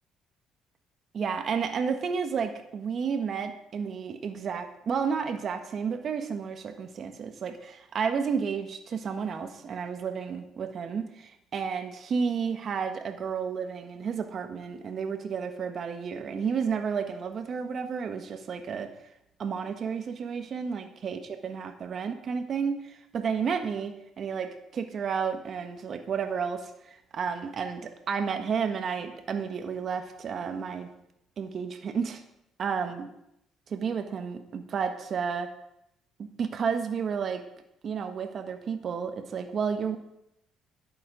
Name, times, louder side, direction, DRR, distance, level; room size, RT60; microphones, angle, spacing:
voice 1, 1.1-18.9 19.4-26.7 27.1-30.9 31.4-32.2 32.6-33.1 33.7-35.5 36.2-37.4 37.8-40.0, right 6 dB, 45° right, 7 dB, 1.3 m, -31 dB
11.0 x 8.6 x 5.0 m, 0.80 s
cardioid pair, 110°, 0 cm